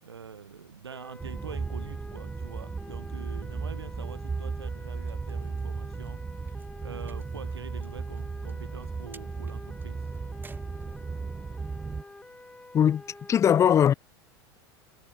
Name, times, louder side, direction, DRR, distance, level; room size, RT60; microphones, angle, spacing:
voice 1, 0.0-6.2 6.8-10.1, right 6 dB, 75° right, 4.1 m, -45 dB
sound 1, 0.9-13.4, left 2 dB, 5° left, 2.8 m, -49 dB
sound 2, 1.2-12.0, right 4 dB, 15° right, 1.1 m, -36 dB
voice 2, 13.3-13.9, left 9 dB, 20° left, 0.4 m, -20 dB
figure-of-eight pair, 80°, 13 cm